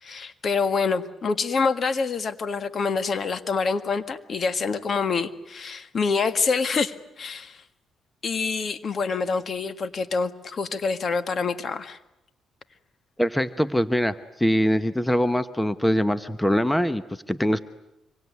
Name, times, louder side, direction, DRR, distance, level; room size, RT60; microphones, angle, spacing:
voice 1, 0.0-7.6 8.2-12.0, left 4 dB, 45° left, 11 dB, 1.7 m, -26 dB
voice 2, 13.2-17.6, equal, 5° left, 12 dB, 1.0 m, -23 dB
25.5 x 24.5 x 9.5 m, 0.90 s
cardioid pair, 90°, 0 cm